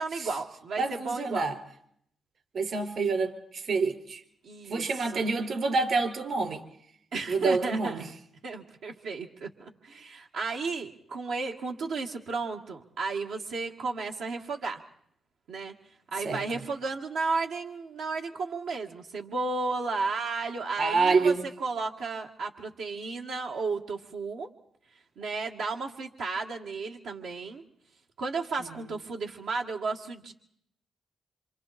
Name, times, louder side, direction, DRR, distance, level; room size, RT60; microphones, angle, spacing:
voice 1, 0.0-1.5 4.4-5.3 7.1-8.1 8.4-14.8 15.5-15.7 16.1-24.5 25.2-27.6 28.2-30.3, right 4 dB, 85° right, 0 dB, 1.9 m, -33 dB
voice 2, 0.8-1.5 2.5-4.2 4.7-6.6 7.3-8.0 16.2-16.4 20.8-21.4, right 4 dB, 60° right, 5 dB, 4.7 m, -27 dB
27.5 x 27.0 x 4.3 m, 0.68 s
cardioid pair, 90°, 0 cm